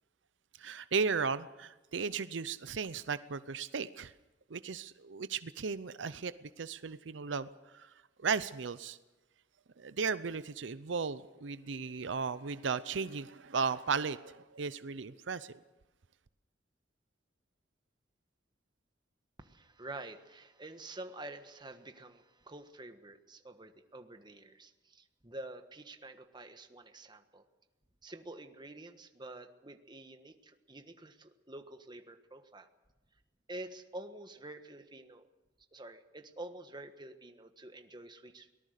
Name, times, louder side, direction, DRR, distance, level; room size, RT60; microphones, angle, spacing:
voice 1, 0.6-4.1 4.5-9.0 9.8-15.6, right 5 dB, 85° right, 14 dB, 0.7 m, -36 dB
voice 2, 19.4-27.4 28.0-32.7 33.5-35.2 35.7-38.5, right 2 dB, 25° right, 7 dB, 1.4 m, -48 dB
23.5 x 18.5 x 6.6 m, 1.1 s
head